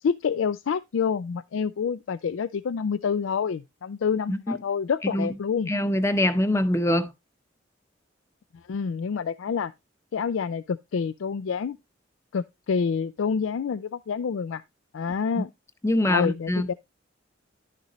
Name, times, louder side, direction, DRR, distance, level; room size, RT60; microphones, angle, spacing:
voice 1, 0.0-5.7 8.7-9.7 10.1-11.8 12.3-14.6 14.9-15.5 16.1-16.7, left 6 dB, 90° left, 0.4 m, -27 dB
voice 2, 5.7-7.1 15.8-16.7, left 1 dB, 15° left, 0.7 m, -24 dB
11.0 x 6.7 x 3.0 m
head